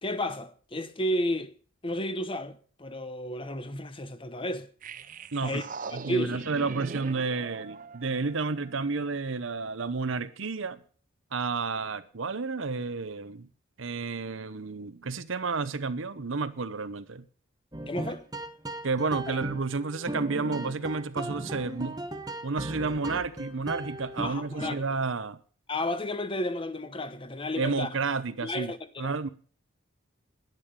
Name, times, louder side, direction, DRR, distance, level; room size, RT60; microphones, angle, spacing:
voice 1, 0.0-1.5 1.8-4.7 5.4-5.7 5.9-6.4 17.9-18.2 24.2-24.8 25.7-27.9 28.4-29.1, left 1 dB, 25° left, 0.9 m, -32 dB
sound 1, 4.8-9.1, right 4 dB, 40° right, 0.5 m, -41 dB
voice 2, 5.3-10.8 11.3-13.5 13.8-17.2 18.8-22.0 22.4-25.4 27.6-28.7 29.0-29.3, right 4 dB, 65° right, 0.8 m, -31 dB
sound 2, 17.7-25.0, right 1 dB, 20° right, 1.0 m, -37 dB
10.5 x 10.5 x 6.8 m
head